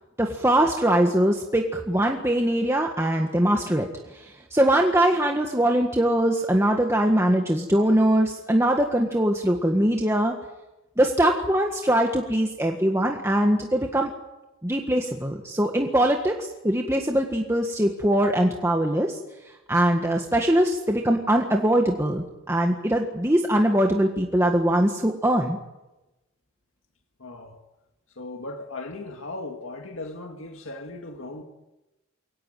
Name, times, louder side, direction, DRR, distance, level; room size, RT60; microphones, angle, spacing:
voice 1, 0.2-10.3 11.0-14.1 14.6-19.2 19.4-25.6, right 1 dB, 15° right, 1.7 m, -22 dB
voice 2, 27.2-27.6 28.2-31.4, left 2 dB, 75° left, 2.1 m, -37 dB
23.5 x 18.0 x 9.2 m
head